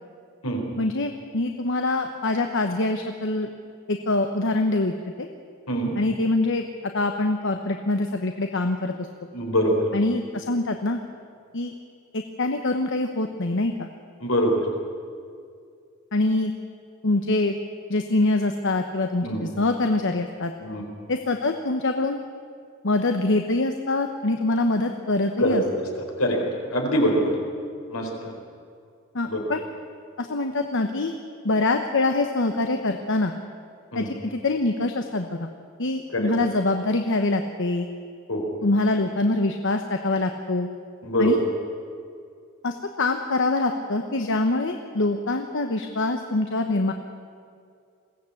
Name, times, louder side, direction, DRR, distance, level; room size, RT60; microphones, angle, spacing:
voice 1, 0.8-3.5 3.9-5.3 6.0-6.7 6.9-9.1 9.9-11.0 11.5-11.7 12.1-13.9 16.1-16.5 17.0-17.6 17.9-20.5 21.1-22.2 22.8-25.6 29.1-29.6 30.2-31.1 31.4-33.3 33.9-35.5 35.8-37.9 38.6-40.7 41.2-41.4 42.6-46.9, left 2 dB, 60° left, 5 dB, 1.0 m, -24 dB
voice 2, 9.3-9.9 14.2-14.6 19.2-19.4 20.6-20.9 25.4-25.8 26.2-26.4 26.7-27.3 27.9-28.3 29.3-29.5 33.9-34.1 36.1-36.3 38.3-38.5 41.0-41.4, equal, 75° left, 1 dB, 4.5 m, -23 dB
21.5 x 16.0 x 8.5 m, 2.3 s
head